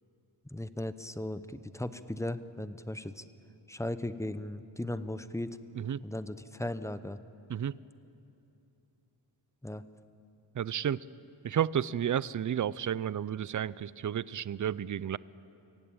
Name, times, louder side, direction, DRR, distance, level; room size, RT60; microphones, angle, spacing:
voice 1, 0.5-3.2 3.7-5.6 6.0-7.2 9.6-9.8, left 1 dB, 5° left, 13 dB, 0.7 m, -37 dB
voice 2, 10.6-11.0 11.4-15.2, right 9 dB, 45° right, 20 dB, 0.5 m, -31 dB
24.5 x 16.5 x 8.9 m, 2.8 s
wide cardioid pair, 90°, 44 cm